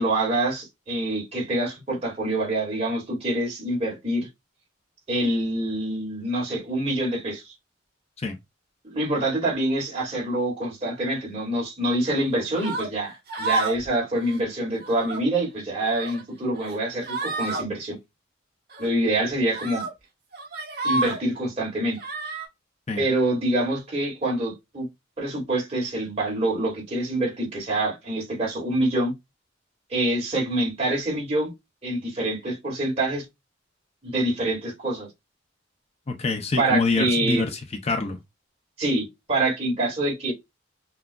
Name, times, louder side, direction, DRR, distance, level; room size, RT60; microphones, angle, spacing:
voice 1, 0.0-4.3 5.1-7.5 8.8-18.0 18.8-19.9 20.8-22.0 23.0-24.9 25.2-29.1 29.9-31.5 31.8-33.2 34.0-35.1 36.6-37.5 38.8-40.3, right 1 dB, 35° right, 2.0 m, -26 dB
sound 1, 12.6-12.9 13.3-13.9 14.2-14.4 14.8-15.2 15.7-16.2 16.6-16.8 17.0-17.6 18.7-18.9 19.5-19.9 20.3-21.2 22.0-22.5, right 2 dB, 50° right, 1.1 m, -30 dB
voice 2, 36.1-38.2, left 3 dB, 35° left, 0.5 m, -25 dB
5.8 x 2.3 x 2.2 m
head